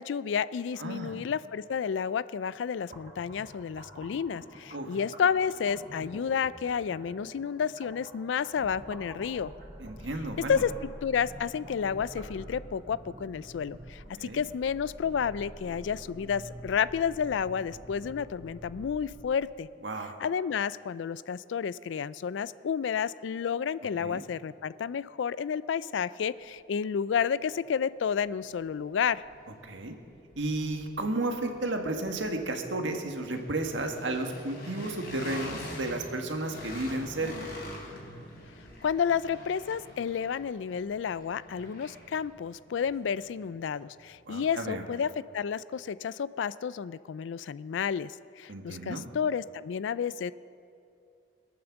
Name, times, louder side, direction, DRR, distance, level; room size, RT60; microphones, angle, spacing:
voice 1, 0.0-9.5 10.5-10.7 11.0-19.7 20.2-29.2 38.8-50.3, left 7 dB, 80° left, 17 dB, 0.4 m, -31 dB
voice 2, 0.8-1.2 4.7-4.9 9.8-10.6 14.2-14.4 19.8-20.2 24.0-24.2 29.6-29.9 30.4-37.5 44.3-44.8 48.5-49.0, right 2 dB, 85° right, 4 dB, 1.6 m, -33 dB
sound 1, 2.8-12.3, equal, 45° right, 2.4 m, -50 dB
sound 2, 8.6-19.4, right 1 dB, 20° right, 0.9 m, -47 dB
sound 3, 27.6-27.7 28.2-44.2, left 1 dB, 65° left, 3.5 m, -46 dB
22.0 x 8.7 x 7.1 m, 2.5 s
head